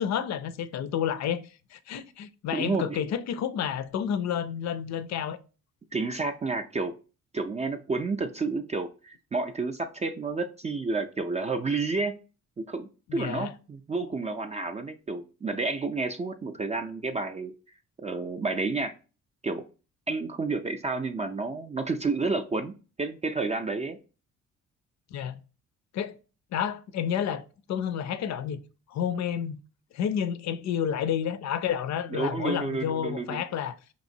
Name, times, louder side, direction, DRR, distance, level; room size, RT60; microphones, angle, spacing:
voice 1, 0.0-1.4 1.7-5.4 13.1-13.5 25.1-25.4 25.9-26.1 26.5-28.6 28.9-29.6 29.9-33.8, left 8 dB, 65° left, 0.5 m, -30 dB
voice 2, 2.5-3.0 5.9-6.9 7.3-12.1 12.6-17.5 18.0-18.9 19.4-19.6 20.1-24.0 32.1-33.4, right 3 dB, 25° right, 0.4 m, -30 dB
4.9 x 3.0 x 2.6 m
cardioid pair, 90°, 30 cm